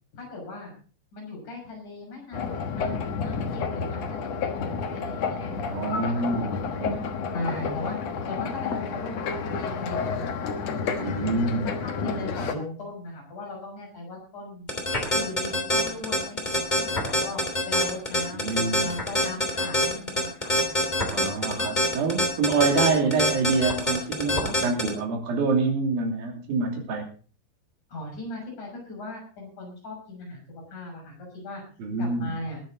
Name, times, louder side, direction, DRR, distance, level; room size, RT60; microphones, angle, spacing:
voice 1, 0.1-0.7 1.1-6.2 7.3-11.3 11.8-14.7 15.1-20.9 27.9-30.4 30.7-31.6 32.0-32.6, left 2 dB, 45° left, -1 dB, 7.5 m, -38 dB
sound 1, 2.3-12.5, left 5 dB, 65° left, 1.6 m, -30 dB
voice 2, 5.7-7.1 11.0-11.7 18.4-18.8 21.1-27.0 31.8-32.3, right 4 dB, 60° right, 2 dB, 4.5 m, -26 dB
sound 2, 14.7-24.9, left 1 dB, 10° left, 2.4 m, -24 dB
20.5 x 9.4 x 4.0 m, 0.40 s
omnidirectional pair, 5.0 m